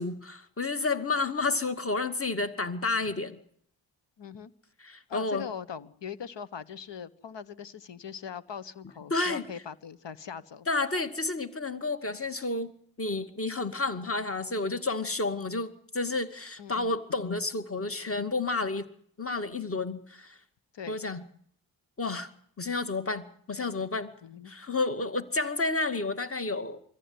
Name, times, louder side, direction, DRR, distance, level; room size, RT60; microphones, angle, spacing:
voice 1, 0.0-3.4 4.8-5.5 9.1-9.4 10.7-12.7 13.0-18.9 19.2-20.3 20.9-21.2 22.0-22.3 22.6-24.1 24.5-26.8, left 3 dB, 25° left, 9 dB, 2.3 m, -30 dB
voice 2, 4.2-4.5 5.1-10.7 16.6-16.9 20.7-21.0 24.2-24.5, left 7 dB, 60° left, 15 dB, 1.5 m, -41 dB
24.0 x 14.5 x 9.7 m, 0.66 s
supercardioid pair, 45°, 48 cm